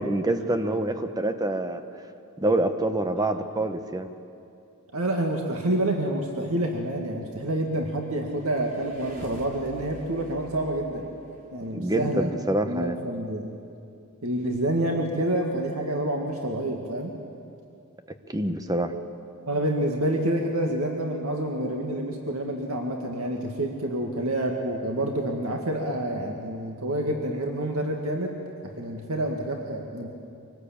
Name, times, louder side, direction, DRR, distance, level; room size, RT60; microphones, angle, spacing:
voice 1, 0.0-1.8 2.4-4.1 11.7-13.0 18.3-18.9, right 1 dB, 15° right, 8 dB, 1.1 m, -26 dB
voice 2, 4.9-11.1 11.5-12.3 12.7-13.5 14.2-17.1 19.5-28.4 28.6-30.1, right 1 dB, 80° right, 1 dB, 2.0 m, -28 dB
sound 1, 8.3-11.7, left 1 dB, 40° right, 3.6 m, -46 dB
24.5 x 19.0 x 8.7 m, 2.6 s
head